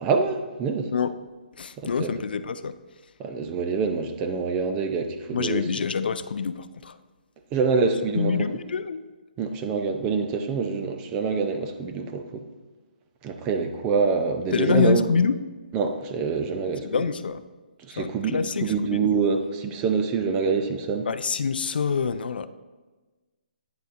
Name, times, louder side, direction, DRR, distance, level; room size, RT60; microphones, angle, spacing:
voice 1, 0.0-0.9 1.8-2.1 3.2-5.6 7.5-8.3 9.4-12.4 13.2-15.0 15.7-16.9 17.9-21.1, right 5 dB, 15° right, 6 dB, 0.3 m, -26 dB
voice 2, 1.6-2.8 5.3-7.0 8.1-9.0 14.5-15.4 16.8-17.5 17.9-19.1 21.1-22.5, left 5 dB, 75° left, 13 dB, 0.4 m, -26 dB
9.2 x 6.8 x 2.5 m, 1.3 s
hypercardioid pair, 170°, 5 cm